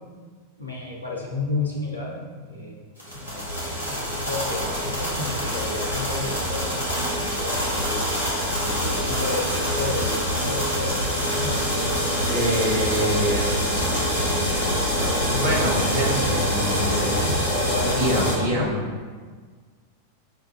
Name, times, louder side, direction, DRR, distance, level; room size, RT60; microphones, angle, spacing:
voice 1, 0.6-2.8 3.1-3.5 3.9-6.8 7.4-8.2 8.6-12.3 15.2-15.4 17.2-18.9, left 3 dB, 80° left, -3 dB, 0.7 m, -32 dB
sound 1, 3.0-18.3, equal, 85° right, 1.3 m, -25 dB
voice 2, 12.3-13.5 15.3-17.2 18.0-18.8, equal, 55° right, -5 dB, 1.2 m, -25 dB
6.1 x 2.4 x 2.4 m, 1.5 s
figure-of-eight pair, 90°, 0 cm